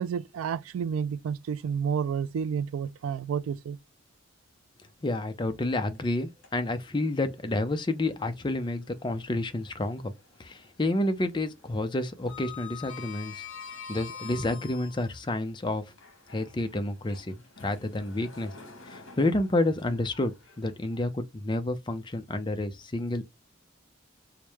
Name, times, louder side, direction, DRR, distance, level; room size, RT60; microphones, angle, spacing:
voice 1, 0.0-3.8, right 7 dB, 90° right, 0.3 m, -30 dB
voice 2, 5.0-10.1 10.4-13.4 13.9-15.8 16.3-17.3 17.6-18.5 18.9-23.2, left 2 dB, 25° left, 0.5 m, -29 dB
Sliding door, 5.9-6.9 7.3-7.4 9.1-10.2 10.5-10.8 11.1-15.2 15.9-21.1, left 6 dB, 70° left, 1.2 m, -46 dB
4.6 x 2.1 x 3.3 m
head